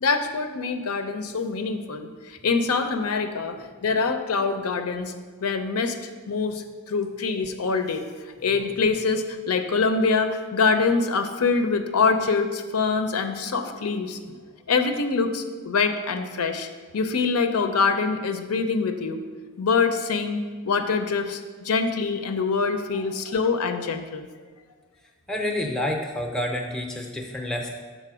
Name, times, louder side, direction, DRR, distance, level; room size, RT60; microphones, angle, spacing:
voice 1, 0.0-3.6 3.8-5.1 5.4-8.1 8.4-14.4 14.7-16.7 16.9-19.2 19.6-20.4 20.6-24.3, left 4 dB, 75° left, 7 dB, 0.6 m, -24 dB
voice 2, 25.3-27.7, left 1 dB, 5° left, 1 dB, 0.6 m, -28 dB
6.7 x 4.1 x 6.1 m, 1.4 s
head